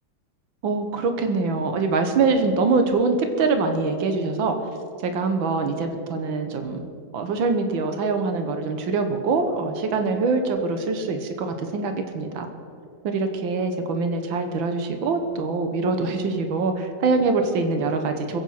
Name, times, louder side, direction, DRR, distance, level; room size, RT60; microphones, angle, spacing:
voice 1, 0.6-4.6 5.0-6.8 7.1-12.5 13.0-18.4, right 4 dB, 80° right, 6 dB, 1.9 m, -24 dB
21.5 x 8.6 x 5.7 m, 2.4 s
omnidirectional pair, 2.1 m